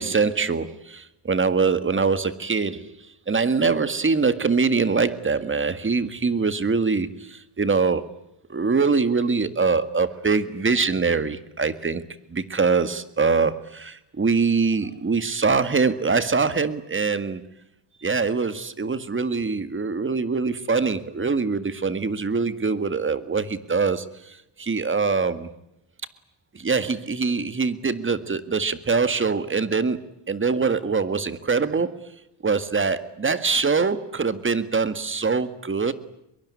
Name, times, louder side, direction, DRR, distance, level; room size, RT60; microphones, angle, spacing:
voice 1, 0.0-3.0 3.3-8.1 8.5-12.0 12.3-17.4 18.0-25.5 26.5-30.0 30.3-32.0 32.4-35.9, right 4 dB, 25° right, 1.9 m, -23 dB
23.5 x 22.5 x 9.7 m
cardioid pair, 125°, 48 cm